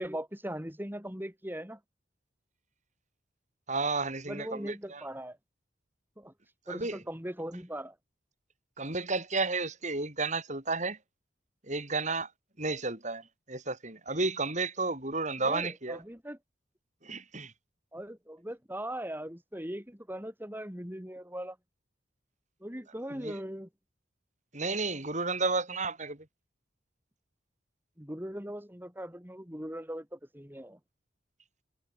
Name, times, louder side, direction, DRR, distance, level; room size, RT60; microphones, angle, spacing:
voice 1, 0.0-1.8 4.3-5.4 6.2-6.3 6.7-8.0 15.4-16.4 17.9-21.6 22.6-23.7 28.0-30.8, right 1 dB, 10° right, 5.2 m, -39 dB
voice 2, 3.7-5.0 6.7-7.0 8.8-11.0 11.6-12.3 12.6-16.0 17.0-17.5 23.1-23.4 24.5-26.3, right 3 dB, 40° right, 7.4 m, -32 dB
head